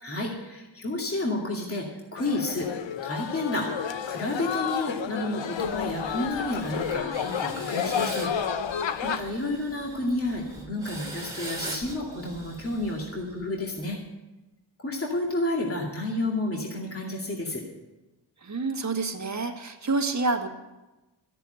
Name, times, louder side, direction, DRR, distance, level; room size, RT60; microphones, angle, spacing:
voice 1, 0.0-2.7 3.0-3.7 4.0-8.3 9.0-14.0 14.8-17.6, left 2 dB, 30° left, -1 dB, 2.4 m, -30 dB
sound 1, 2.2-9.2, left 7 dB, 80° left, 0.9 m, -31 dB
sound 2, 5.6-13.6, right 1 dB, 10° right, 2.7 m, -42 dB
voice 2, 9.0-9.3 18.4-20.5, right 3 dB, 40° right, 3 dB, 1.7 m, -28 dB
13.5 x 7.0 x 9.1 m, 1.1 s
wide cardioid pair, 80°, 44 cm